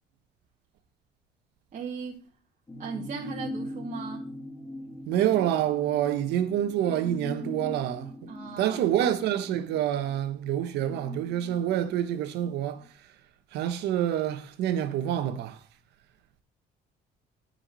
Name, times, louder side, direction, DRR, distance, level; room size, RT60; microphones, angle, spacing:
voice 1, 1.7-2.2 2.8-4.3 8.3-8.8, right 5 dB, 45° right, 2.2 m, -37 dB
sound 1, 2.7-12.5 12.8-12.9, left 1 dB, 20° left, 2.0 m, -41 dB
voice 2, 5.1-8.3 8.6-12.9 13.5-15.6, right 11 dB, 85° right, 1.2 m, -27 dB
9.1 x 5.9 x 6.8 m
cardioid pair, 110°, 17 cm